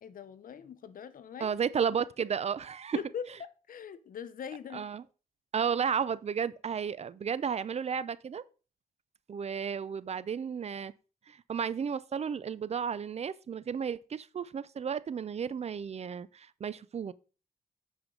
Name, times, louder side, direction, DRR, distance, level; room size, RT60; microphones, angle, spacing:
voice 1, 0.0-1.6 2.9-3.3 3.7-4.9, left 7 dB, 70° left, 0.7 m, -41 dB
voice 2, 1.4-3.0 4.7-5.0 5.5-8.4 9.3-10.9 11.3-17.1, right 7 dB, 45° right, 0.4 m, -33 dB
8.9 x 5.1 x 3.7 m
cardioid pair, 75°, 15 cm